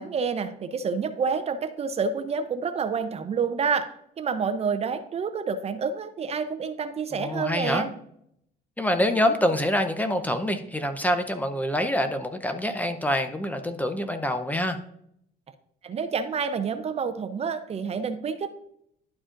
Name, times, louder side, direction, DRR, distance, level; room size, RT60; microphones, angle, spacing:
voice 1, 0.0-3.8 4.2-7.9 15.8-18.5, right 5 dB, 40° right, 9 dB, 0.6 m, -28 dB
voice 2, 7.1-7.8 8.8-14.8, left 1 dB, 10° left, 8 dB, 0.7 m, -26 dB
11.5 x 4.8 x 2.5 m, 0.72 s
cardioid pair, 110°, 17 cm